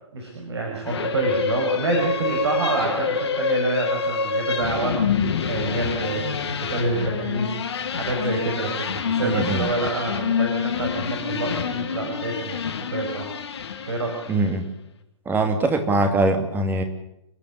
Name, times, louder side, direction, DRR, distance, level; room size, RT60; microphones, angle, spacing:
voice 1, 0.1-6.2 6.7-13.3 13.9-14.1, right 3 dB, 60° right, 0 dB, 5.9 m, -27 dB
sound 1, 0.8-14.5, left 6 dB, 60° left, 2.6 m, -27 dB
voice 2, 9.2-9.7 14.3-14.7 15.3-16.8, right 2 dB, 15° right, 6 dB, 2.6 m, -22 dB
29.5 x 10.5 x 9.7 m, 0.84 s
figure-of-eight pair, 125°, 16 cm